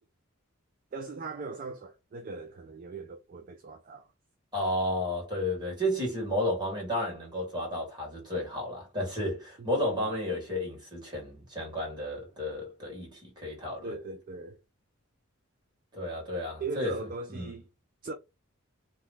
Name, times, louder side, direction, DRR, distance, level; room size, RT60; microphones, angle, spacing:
voice 1, 0.9-4.1 9.6-10.1 13.8-14.6 16.6-17.7 18.0-18.1, right 4 dB, 40° right, 0.3 m, -39 dB
voice 2, 4.5-14.0 15.9-17.5, left 1 dB, 20° right, 1.6 m, -32 dB
2.9 x 2.2 x 3.5 m
head